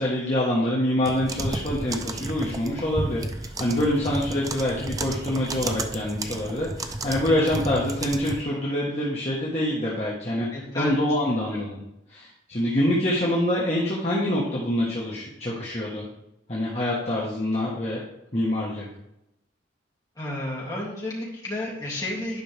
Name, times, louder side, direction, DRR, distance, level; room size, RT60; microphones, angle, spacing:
voice 1, 0.0-10.5 10.7-11.8 12.1-16.0 16.5-18.0 18.3-18.9, left 1 dB, 35° left, -6 dB, 1.5 m, -25 dB
sound 1, 1.0-8.4, right 2 dB, 20° right, 0.4 m, -32 dB
voice 2, 10.5-11.0 20.2-22.4, left 1 dB, 20° left, -6 dB, 2.8 m, -31 dB
11.0 x 5.4 x 3.5 m, 0.84 s
head